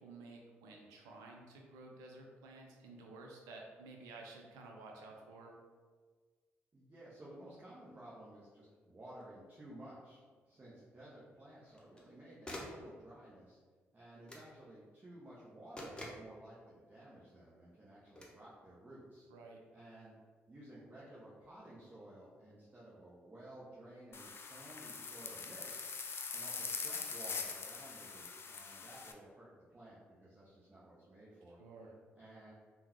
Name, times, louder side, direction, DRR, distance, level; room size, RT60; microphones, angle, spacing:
voice 1, 0.0-5.5 19.3-19.6 31.6-31.9, right 3 dB, 75° right, 1 dB, 0.5 m, -53 dB
voice 2, 6.7-10.2 10.5-13.6 13.9-19.3 19.7-20.1 20.5-25.9 26.3-31.6 32.2-32.5, right 1 dB, 30° right, -8 dB, 0.8 m, -54 dB
sound 1, 9.2-9.3 11.7-12.1 12.5-12.9 14.3-14.5 15.8-16.3 18.2-18.4, left 1 dB, 15° left, 0.8 m, -47 dB
sound 2, 24.1-29.1, left 5 dB, 40° left, 0.4 m, -43 dB
3.6 x 2.2 x 3.0 m, 1.5 s
hypercardioid pair, 45°, 6 cm